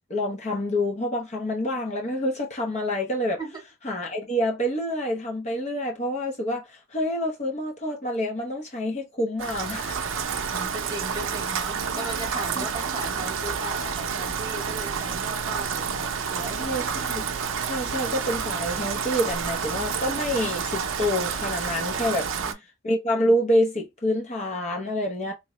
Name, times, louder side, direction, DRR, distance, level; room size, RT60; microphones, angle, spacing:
voice 1, 0.1-3.4 3.8-10.4 12.6-12.7 16.6-17.2 17.6-22.3 22.8-25.3, equal, 35° left, 0.6 m, -27 dB
Rain, 9.4-22.5, right 6 dB, 65° right, 0.5 m, -29 dB
voice 2, 10.5-16.8 22.0-22.6, right 1 dB, 20° right, 0.9 m, -37 dB
3.7 x 2.1 x 2.9 m
head